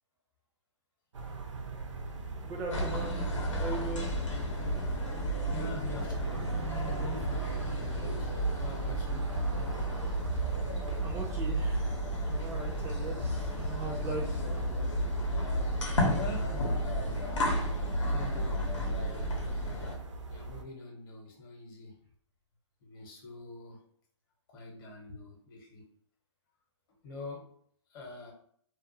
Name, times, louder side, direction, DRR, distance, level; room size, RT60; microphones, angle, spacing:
sound 1, 1.1-20.6, right 4 dB, 85° right, 0.5 m, -41 dB
voice 1, 2.4-4.1 11.0-14.4, right 2 dB, 15° right, -2 dB, 0.4 m, -40 dB
sound 2, 2.7-19.9, equal, 85° left, 0.8 m, -32 dB
voice 2, 5.5-8.3 8.6-9.3 16.1-17.0 18.1-19.4 20.3-22.0 22.8-23.8 24.5-25.8 27.0-27.5 27.9-28.3, left 2 dB, 45° left, 0 dB, 0.8 m, -45 dB
2.3 x 2.3 x 2.6 m, 0.64 s
hypercardioid pair, 135°, 15 cm